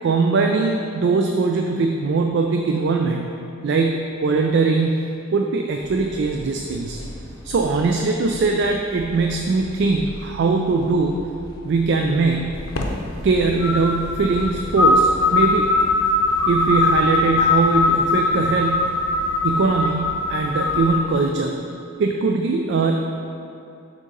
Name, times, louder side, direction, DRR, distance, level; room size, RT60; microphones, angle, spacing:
voice 1, 0.0-3.3 3.6-5.0 5.3-7.0 7.4-11.2 11.6-12.6 13.2-15.7 16.5-18.9 19.4-21.6 22.0-23.0, right 4 dB, 55° right, 2 dB, 0.3 m, -21 dB
sound 1, 5.8-19.4, equal, 20° left, 0.5 m, -40 dB
sound 2, 12.5-21.0, left 2 dB, 85° left, 0.7 m, -21 dB
6.6 x 3.7 x 5.2 m, 2.6 s
head